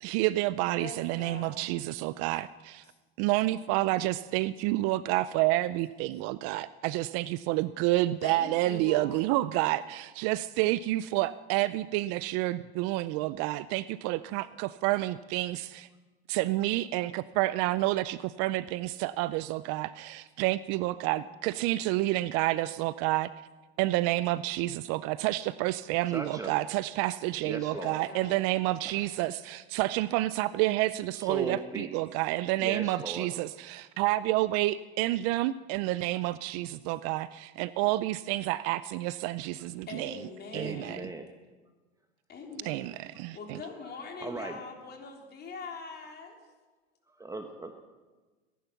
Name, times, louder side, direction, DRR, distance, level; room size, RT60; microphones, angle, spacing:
voice 1, 0.0-2.8 3.2-15.9 16.3-23.3 23.8-40.2 40.5-41.0 42.6-43.6, right 17 dB, 50° right, 17 dB, 0.5 m, -29 dB
voice 2, 0.7-1.8 8.2-9.3 27.7-28.5 39.9-41.1 42.3-46.4, left 4 dB, 30° left, 2 dB, 3.5 m, -43 dB
voice 3, 26.1-26.5 27.4-28.0 28.8-29.1 31.1-31.9 32.6-33.3 40.5-41.3 44.2-44.6 47.1-47.8, right 3 dB, 10° right, 5 dB, 1.1 m, -37 dB
21.5 x 11.0 x 5.8 m, 1.3 s
hypercardioid pair, 110°, 33 cm